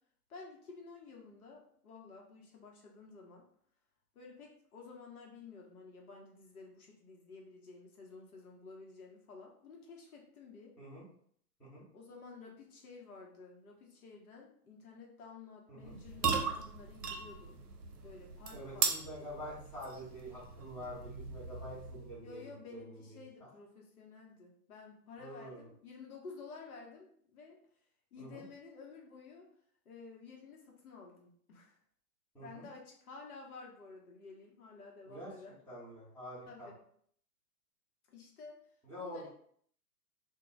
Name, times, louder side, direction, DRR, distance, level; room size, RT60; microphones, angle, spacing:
voice 1, 0.3-3.5 4.1-10.7 11.9-17.6 18.0-18.9 22.2-27.6 28.1-29.5 29.8-31.8 32.4-35.6 36.5-36.8 38.1-38.6 39.0-39.3, left 4 dB, 65° left, 0 dB, 0.8 m, -52 dB
sound 1, 15.8-22.2, right 5 dB, 75° right, 0.6 m, -38 dB
voice 2, 18.5-23.5 25.2-25.7 28.2-28.4 32.3-32.7 35.1-35.3 35.7-36.7 38.8-39.3, equal, 5° left, -11 dB, 0.8 m, -47 dB
2.2 x 2.0 x 3.7 m, 0.62 s
hypercardioid pair, 125°, 48 cm